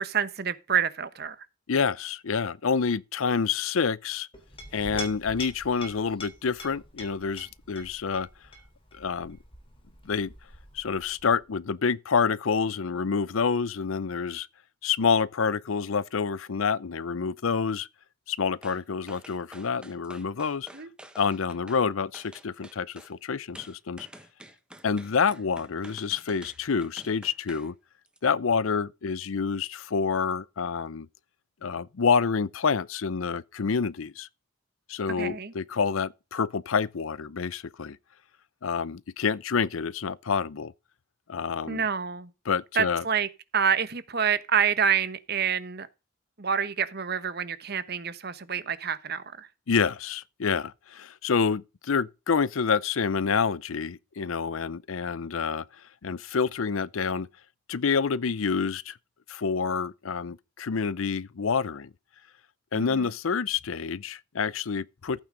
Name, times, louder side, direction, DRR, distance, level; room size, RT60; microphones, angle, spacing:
voice 1, 0.0-1.4 20.7-20.9 35.2-35.5 41.7-42.3 42.7-45.9 46.4-49.5 62.7-63.1, right 7 dB, 50° right, 1.1 m, -27 dB
voice 2, 1.7-4.3 4.7-8.3 8.9-9.4 10.0-10.3 10.7-14.5 14.8-17.9 18.3-20.7 21.2-24.1 24.8-27.7 28.2-31.1 31.6-34.3 34.9-38.0 38.6-40.7 41.3-41.8 42.5-43.0 49.7-55.6 56.0-57.3 57.7-59.0 59.3-61.9 62.7-65.2, left 5 dB, 80° left, 0.6 m, -28 dB
Chink clink, 4.3-11.4, left 1 dB, 25° left, 3.7 m, -44 dB
sound 1, 18.6-18.8 19.1-21.8 22.1-23.1 23.5-27.7 28.0-28.2, right 1 dB, 5° right, 1.2 m, -49 dB
15.0 x 8.9 x 3.9 m
head